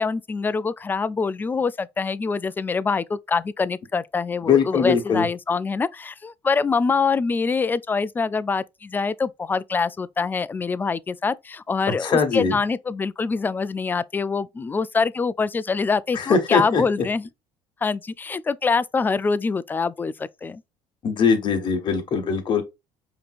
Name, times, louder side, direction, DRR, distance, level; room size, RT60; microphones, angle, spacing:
voice 1, 0.0-17.3 17.8-20.6, left 4 dB, 15° left, 0.3 m, -25 dB
voice 2, 4.4-5.3 12.0-12.6 16.1-16.8 21.0-22.6, left 5 dB, 45° left, 1.4 m, -21 dB
5.1 x 2.9 x 2.4 m
supercardioid pair, 95°, 11 cm